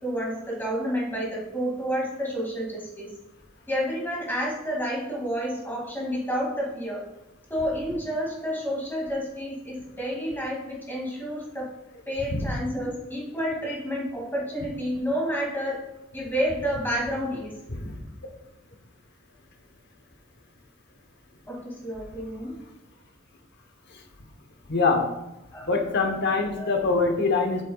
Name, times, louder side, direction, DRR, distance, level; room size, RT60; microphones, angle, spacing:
voice 1, 0.0-3.1 3.7-7.0 7.5-11.7 12.1-15.8 16.1-17.5 21.5-22.5 25.5-25.6 26.6-26.7, equal, 10° left, -3 dB, 2.3 m, -30 dB
voice 2, 24.7-25.1 25.6-27.6, left 3 dB, 60° left, 4 dB, 1.0 m, -24 dB
8.5 x 7.6 x 2.3 m, 0.93 s
head